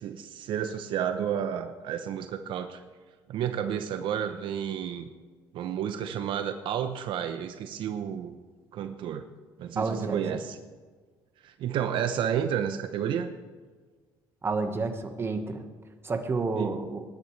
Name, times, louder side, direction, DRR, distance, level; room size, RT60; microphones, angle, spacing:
voice 1, 0.0-2.8 3.3-5.1 5.5-8.3 8.7-9.3 9.6-10.6 11.4-13.3 16.6-16.7, right 9 dB, 70° right, 8 dB, 0.8 m, -31 dB
voice 2, 9.8-10.2 14.4-15.7 16.0-17.0, right 3 dB, 30° right, 6 dB, 1.4 m, -30 dB
20.0 x 11.0 x 3.3 m, 1.5 s
cardioid pair, 110°, 9 cm